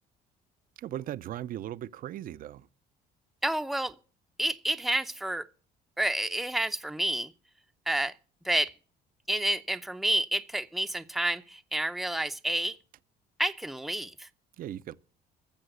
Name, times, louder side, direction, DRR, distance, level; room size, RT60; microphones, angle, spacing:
voice 1, 0.8-2.7 14.6-15.0, right 12 dB, 55° right, 0.6 m, -38 dB
voice 2, 3.4-3.9 4.4-5.4 6.0-7.3 7.9-8.1 8.4-8.7 9.3-12.8 13.4-14.3, right 1 dB, ahead, 0.6 m, -29 dB
14.0 x 7.4 x 7.8 m
cardioid pair, 110°, 17 cm